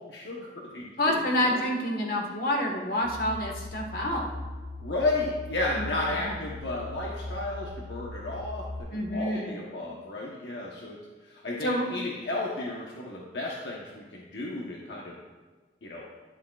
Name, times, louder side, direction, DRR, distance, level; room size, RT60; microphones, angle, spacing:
voice 1, 0.0-1.6 4.8-15.2 15.8-16.1, left 2 dB, 70° left, -3 dB, 1.1 m, -33 dB
voice 2, 1.0-4.3 5.7-6.3 8.9-9.5 11.6-11.8, left 1 dB, 55° left, 0 dB, 1.5 m, -28 dB
sound 1, 3.0-8.8, left 1 dB, ahead, 2.4 m, -39 dB
11.5 x 10.5 x 2.4 m, 1.3 s
head